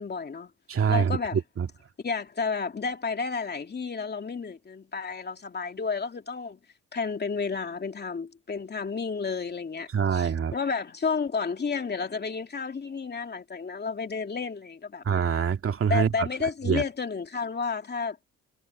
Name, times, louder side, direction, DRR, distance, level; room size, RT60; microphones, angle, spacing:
voice 1, 0.0-0.5 0.9-1.4 2.0-6.6 6.9-15.0 15.9-18.2, left 5 dB, 35° left, 2.6 m, -31 dB
voice 2, 0.7-1.7 9.9-10.5 15.0-16.3 16.7-16.8, right 7 dB, 45° right, 2.3 m, -25 dB
cardioid pair, 90°, 30 cm